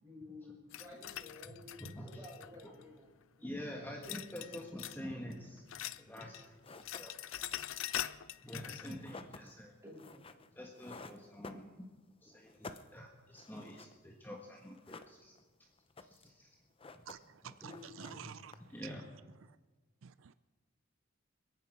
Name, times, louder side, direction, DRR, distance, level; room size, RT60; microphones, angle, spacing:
voice 1, 0.0-4.2 9.8-10.5 17.6-18.2, left 2 dB, 15° right, 5.3 m, -53 dB
sound 1, 0.7-2.8 4.0-5.0 5.3-6.5 6.7-9.0, left 12 dB, 80° left, 0.5 m, -43 dB
voice 2, 1.8-2.2 2.6-2.7 3.4-5.6 6.0-7.8 8.4-9.7 10.5-11.9 12.2-15.3 16.0-16.6 17.4-17.5 18.1-18.2 18.7-19.0, equal, 10° left, 1.4 m, -47 dB
sound 2, 6.2-6.3 6.6-12.1 12.4-14.0 14.3-14.4 14.6-15.5 15.8-16.4 16.6-17.4 17.6-18.9, left 3 dB, 30° left, 0.7 m, -52 dB
voice 3, 17.1-18.9 19.4-19.6 20.0-20.3, right 8 dB, 80° right, 0.5 m, -50 dB
28.0 x 9.4 x 4.9 m
head